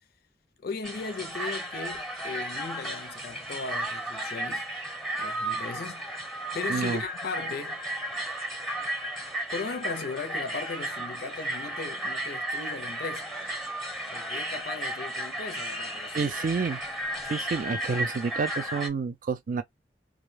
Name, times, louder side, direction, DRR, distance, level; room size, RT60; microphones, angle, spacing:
voice 1, 0.6-4.7 5.1-6.1 6.5-7.9 9.5-13.3 14.1-16.3, left 4 dB, 60° left, 0.4 m, -37 dB
sound 1, 0.8-18.9, right 1 dB, ahead, 0.8 m, -34 dB
voice 2, 6.7-7.0 16.1-16.8 17.2-19.6, right 5 dB, 50° right, 0.4 m, -29 dB
2.4 x 2.1 x 3.1 m
head